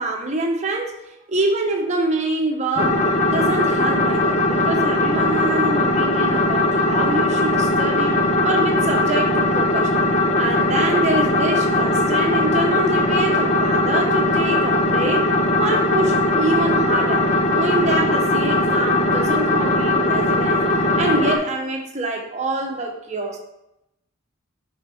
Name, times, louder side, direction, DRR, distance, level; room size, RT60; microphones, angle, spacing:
voice 1, 0.0-10.0 10.4-15.3 15.6-20.7 21.0-23.4, right 2 dB, 30° right, 2 dB, 1.1 m, -25 dB
sound 1, 2.8-21.4, left 2 dB, 30° left, 0.7 m, -19 dB
6.9 x 5.4 x 4.4 m, 0.87 s
head